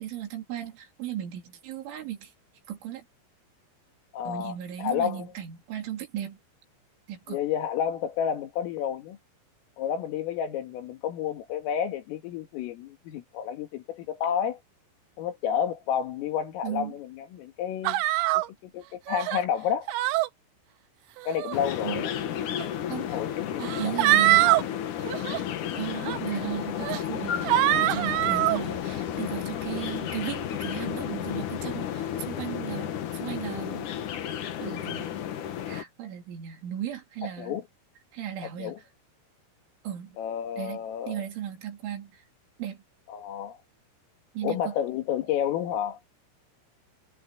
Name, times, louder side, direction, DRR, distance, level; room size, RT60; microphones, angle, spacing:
voice 1, 0.0-2.3 2.7-3.0 4.3-6.4 7.1-7.4 16.6-17.0 21.8-22.1 22.9-23.2 23.6-24.6 25.8-33.9 34.2-35.1 35.7-37.6 38.1-38.8 39.8-40.2 40.6-40.8 41.1-42.2 42.6-42.8 44.4-44.7, right 11 dB, 70° right, 5.6 m, -36 dB
voice 2, 4.1-5.3 7.3-9.2 9.8-14.6 15.2-18.0 18.3-19.9 21.3-22.1 22.8-23.9 37.4-37.6 38.4-38.8 40.2-41.2 43.1-43.6 44.4-46.0, left 9 dB, 85° left, 5.0 m, -30 dB
sound 1, 17.8-18.5 19.1-19.4 19.9-20.3 21.2-21.6 22.6-22.7 23.6-24.6 25.0-25.4 26.0-26.2 26.8-27.0 27.4-28.6, right 16 dB, 90° right, 3.4 m, -23 dB
sound 2, 21.5-35.8, left 10 dB, 65° left, 2.0 m, -32 dB
omnidirectional pair, 5.7 m